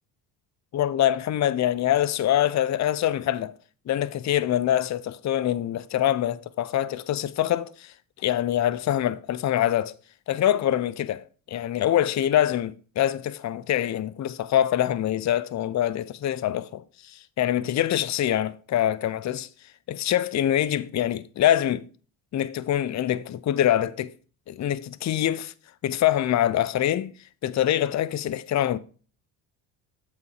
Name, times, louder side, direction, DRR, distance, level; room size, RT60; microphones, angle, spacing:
voice 1, 0.7-3.5 3.9-9.9 10.3-19.5 19.9-21.9 22.3-24.1 24.5-25.5 25.8-27.1 27.4-28.8, left 11 dB, 35° left, 0.6 m, -24 dB
7.8 x 5.3 x 4.7 m
supercardioid pair, 65°, 47 cm